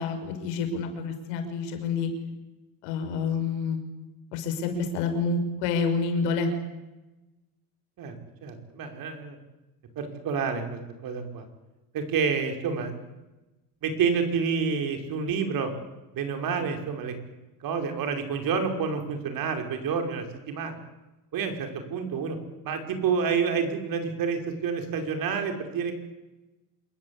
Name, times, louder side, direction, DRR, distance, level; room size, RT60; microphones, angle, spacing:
voice 1, 0.0-2.1 2.8-3.8 4.3-6.5, left 4 dB, 80° left, 6 dB, 5.9 m, -28 dB
voice 2, 8.4-9.4 10.0-11.4 11.9-13.0 13.8-15.7 16.1-17.1 17.6-20.8 21.3-22.4 22.6-25.9, right 6 dB, 45° right, 5 dB, 5.4 m, -28 dB
27.5 x 21.5 x 8.7 m, 1.1 s
cardioid pair, 135°, 46 cm